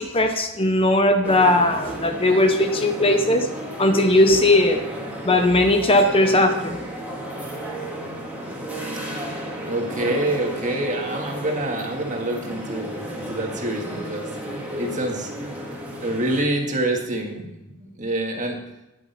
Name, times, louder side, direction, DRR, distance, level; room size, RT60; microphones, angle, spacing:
voice 1, 0.0-3.5 3.8-4.8 5.2-6.8, left 1 dB, 25° left, 6 dB, 0.7 m, -18 dB
sound 1, 1.2-16.4, equal, 5° right, 1.9 m, -33 dB
voice 2, 9.7-14.3 14.8-15.3 16.0-18.6, right 1 dB, 35° right, 1 dB, 1.8 m, -26 dB
10.0 x 8.4 x 5.5 m, 0.95 s
head